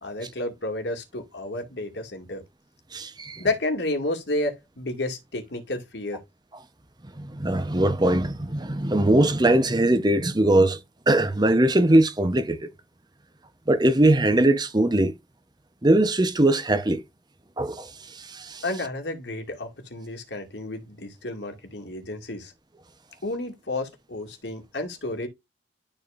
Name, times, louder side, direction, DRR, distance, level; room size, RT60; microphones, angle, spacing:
voice 1, 0.0-2.4 3.4-6.2 18.6-22.5 23.2-25.3, left 2 dB, 70° left, 2.2 m, -31 dB
voice 2, 2.9-3.4 7.2-10.8 11.1-12.7 13.7-15.1 15.8-17.0 17.6-18.6, right 1 dB, 20° right, 0.8 m, -21 dB
12.5 x 4.3 x 2.5 m
head